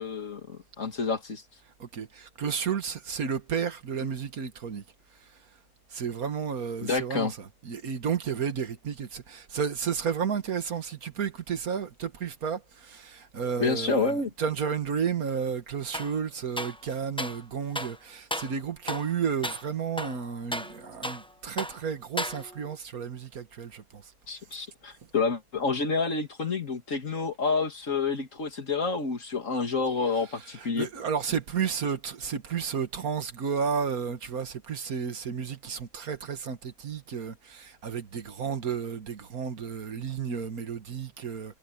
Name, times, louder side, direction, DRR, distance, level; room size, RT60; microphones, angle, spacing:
voice 1, 0.0-1.4 6.8-7.3 13.6-14.3 24.3-30.9, left 4 dB, 65° left, 2.6 m, -29 dB
voice 2, 1.8-4.8 5.9-24.1 30.0-41.6, right 6 dB, 85° right, 2.0 m, -32 dB
sound 1, 15.9-16.2 16.6-17.4 17.7-18.0 18.3-18.6 18.9-19.1 19.4-19.7 20.0-21.3 21.6-21.8 22.2-22.7, equal, 5° left, 0.7 m, -35 dB
omnidirectional pair, 1.5 m